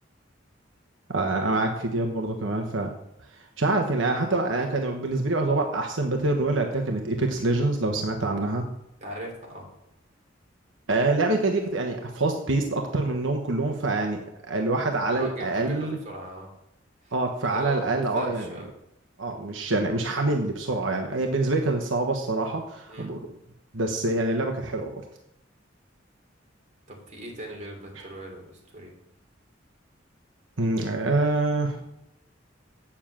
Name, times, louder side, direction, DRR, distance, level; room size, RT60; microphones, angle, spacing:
voice 1, 1.1-2.9 3.3-8.7 10.9-16.0 17.1-18.5 19.2-23.2 23.7-24.9 28.0-28.1 30.6-31.8, right 2 dB, 80° right, 3 dB, 1.2 m, -26 dB
voice 2, 9.0-9.7 15.1-16.5 17.0-17.1 17.4-18.7 22.9-23.1 26.9-28.9, right 1 dB, 40° right, 0 dB, 3.3 m, -39 dB
8.7 x 7.3 x 7.4 m, 0.82 s
head